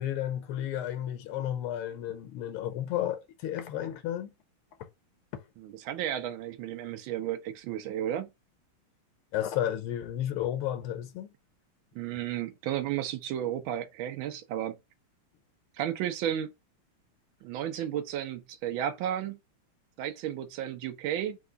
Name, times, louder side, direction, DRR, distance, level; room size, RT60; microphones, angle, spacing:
voice 1, 0.0-4.3 4.8-4.9 9.3-11.3, left 11 dB, 85° left, 1.6 m, -32 dB
voice 2, 5.6-8.3 11.9-14.8 15.7-16.5 17.4-19.4 20.0-21.4, right 11 dB, 75° right, 1.4 m, -33 dB
4.7 x 2.3 x 3.8 m
omnidirectional pair, 2.4 m